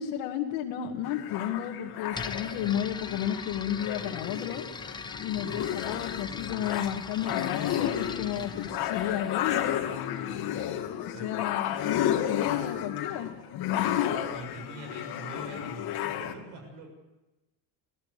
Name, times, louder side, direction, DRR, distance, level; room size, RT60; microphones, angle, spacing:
voice 1, 0.0-4.6 5.2-9.6 10.9-13.3, left 10 dB, 85° left, -2 dB, 2.5 m, -33 dB
sound 1, 1.0-16.3, left 11 dB, 55° left, 2.2 m, -32 dB
sound 2, 2.1-9.9, left 4 dB, 10° left, 0.8 m, -41 dB
voice 2, 5.3-5.7 10.6-11.4 14.3-16.9, right 2 dB, 65° right, 4 dB, 7.2 m, -44 dB
25.5 x 17.5 x 6.8 m, 1.0 s
cardioid pair, 160°, 45 cm